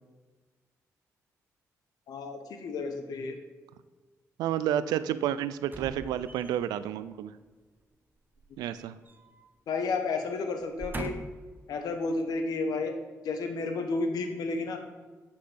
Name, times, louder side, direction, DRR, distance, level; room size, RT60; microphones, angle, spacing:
voice 1, 2.1-3.4 9.7-11.2 11.7-13.0 13.2-14.8, left 3 dB, 75° left, 6 dB, 1.0 m, -31 dB
voice 2, 4.4-7.3 8.6-9.0, right 11 dB, 90° right, 15 dB, 0.3 m, -30 dB
sound 1, 5.7-6.8 8.4-9.5 9.8-10.0 10.6-11.5 12.2-12.3, right 2 dB, 30° right, 0.8 m, -41 dB
8.6 x 5.6 x 3.9 m, 1.3 s
supercardioid pair, 50°, 7 cm